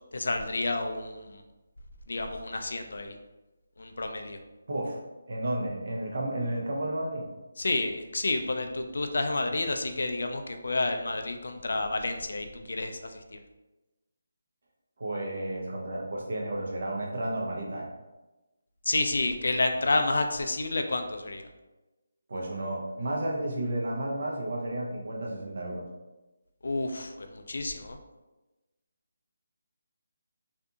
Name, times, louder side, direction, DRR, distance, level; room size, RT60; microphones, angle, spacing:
voice 1, 0.1-1.4 2.1-3.2 3.8-4.4 7.6-13.4 18.9-21.5 26.6-28.0, left 2 dB, 70° left, 5 dB, 0.3 m, -30 dB
voice 2, 4.7-5.0 5.3-7.3 15.0-17.9 22.3-25.8, right 1 dB, 55° right, -2 dB, 0.6 m, -32 dB
2.7 x 2.5 x 2.3 m, 1.1 s
hypercardioid pair, 175°, 0 cm